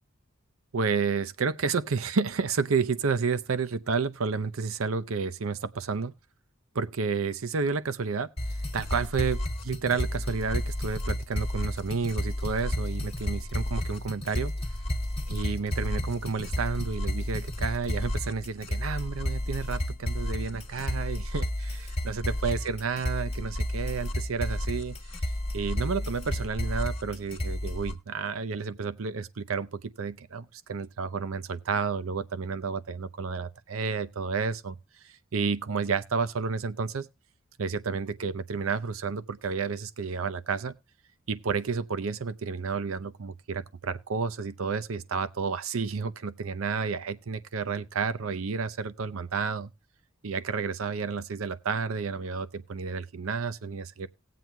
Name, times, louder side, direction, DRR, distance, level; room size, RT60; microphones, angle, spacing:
voice 1, 0.7-6.1 6.7-8.3 8.7-14.5 15.3-25.2 25.5-34.8 35.0-37.1 37.6-40.8 41.3-49.7 50.2-54.1, right 5 dB, 85° right, 0.6 m, -31 dB
sound 1, 8.4-27.9, left 1 dB, 30° left, 1.6 m, -32 dB
19.0 x 7.7 x 2.2 m
head